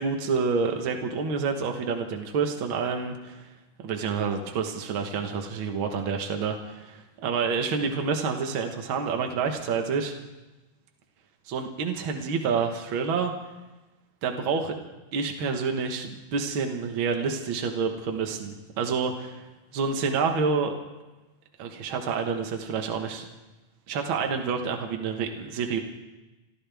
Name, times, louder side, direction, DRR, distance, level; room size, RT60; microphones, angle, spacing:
voice 1, 0.0-3.5 3.8-10.1 11.5-13.3 14.2-14.7 15.1-19.5 19.7-20.7 21.6-23.2 23.9-25.8, right 5 dB, 65° right, 3 dB, 1.2 m, -28 dB
27.5 x 14.0 x 3.5 m, 1.1 s
omnidirectional pair, 4.1 m